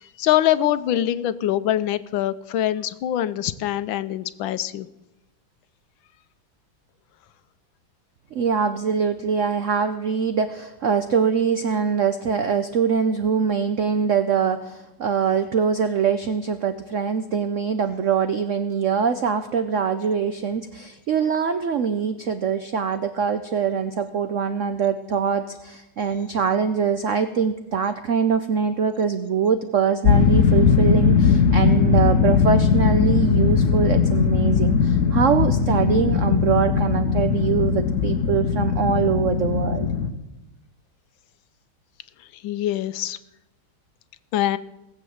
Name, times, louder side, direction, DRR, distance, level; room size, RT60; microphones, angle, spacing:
voice 1, 0.2-4.9 42.3-43.2 44.3-44.6, left 12 dB, 75° left, 15 dB, 1.3 m, -23 dB
voice 2, 8.3-39.9, right 6 dB, 80° right, 10 dB, 0.6 m, -23 dB
sound 1, 30.0-40.1, left 6 dB, 50° left, 1.0 m, -19 dB
18.0 x 7.5 x 7.8 m, 0.96 s
omnidirectional pair, 2.3 m